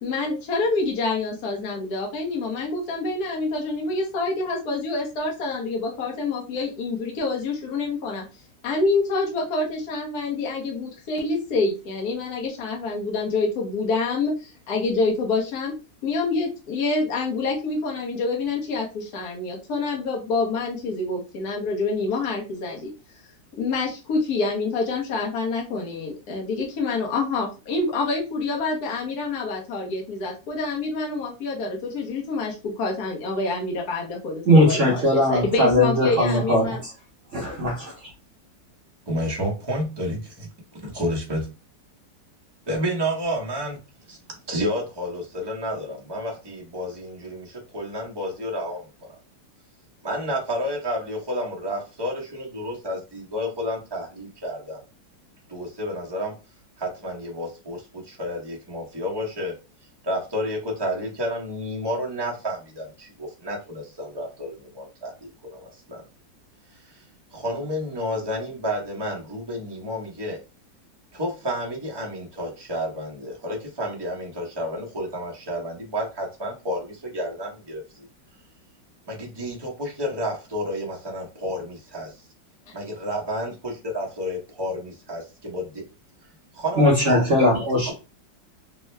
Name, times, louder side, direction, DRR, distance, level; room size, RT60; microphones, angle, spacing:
voice 1, 0.0-8.2 8.6-15.7 16.0-22.9 23.6-36.8 82.7-82.8, left 3 dB, 65° left, -1 dB, 1.2 m, -27 dB
voice 2, 34.5-36.8 37.3-37.9 86.8-87.9, left 1 dB, 55° right, -3 dB, 0.9 m, -19 dB
voice 3, 39.1-41.5 42.7-43.8 44.1-44.2 44.5-48.9 50.0-54.8 55.5-56.3 56.8-59.5 60.0-65.1 65.4-66.0 67.3-70.4 71.1-78.1 79.1-82.1 82.7-85.8 86.5-87.2 87.9-88.0, equal, 25° right, -3 dB, 0.5 m, -30 dB
3.6 x 2.1 x 3.1 m, 0.30 s
omnidirectional pair, 2.0 m